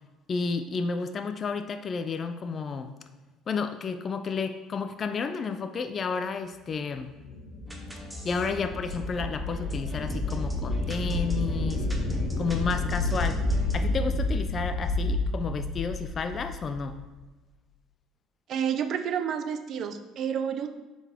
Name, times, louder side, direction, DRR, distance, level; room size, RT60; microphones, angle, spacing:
voice 1, 0.3-2.9 3.5-7.1 8.2-11.9 12.4-13.4 13.7-17.0, left 5 dB, 35° left, 8 dB, 0.3 m, -31 dB
sound 1, 7.0-17.0, left 2 dB, 60° left, 1.0 m, -30 dB
sound 2, 7.7-13.9, equal, 5° right, 0.8 m, -43 dB
voice 2, 18.5-20.8, right 8 dB, 50° right, 9 dB, 0.5 m, -30 dB
7.0 x 3.9 x 3.5 m, 1.2 s
cardioid pair, 130°, 0 cm